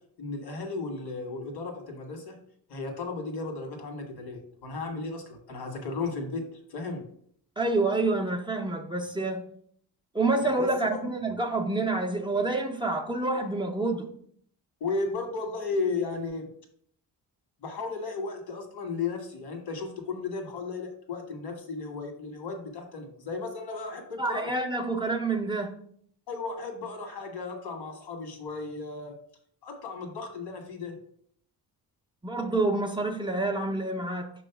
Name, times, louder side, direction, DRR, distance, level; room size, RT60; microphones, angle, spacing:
voice 1, 0.2-2.4 2.7-7.0 10.6-11.2 14.8-16.5 17.6-24.5 26.3-29.1 29.6-31.0, left 4 dB, 85° left, 4 dB, 1.7 m, -35 dB
voice 2, 7.6-9.5 10.1-14.1 24.2-25.7 32.2-34.3, right 2 dB, 10° right, 1 dB, 0.5 m, -28 dB
6.2 x 3.0 x 5.7 m, 0.64 s
wide cardioid pair, 150°, 38 cm